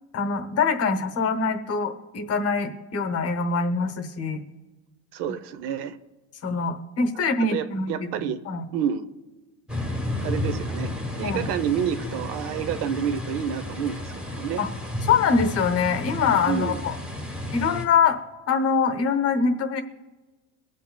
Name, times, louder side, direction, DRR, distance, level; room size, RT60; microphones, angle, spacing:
voice 1, 0.1-4.4 6.4-7.9 8.5-8.6 11.2-11.5 14.6-14.7 15.0-16.9 17.5-18.2 18.5-19.8, left 5 dB, 35° left, 8 dB, 0.9 m, -24 dB
voice 2, 5.1-6.0 7.5-8.4 8.7-9.0 10.2-14.6 16.5-16.8, right 8 dB, 65° right, 12 dB, 0.8 m, -29 dB
sound 1, 9.7-17.8, left 1 dB, ahead, 1.0 m, -32 dB
23.0 x 8.2 x 2.2 m, 1.2 s
cardioid pair, 180°, 43 cm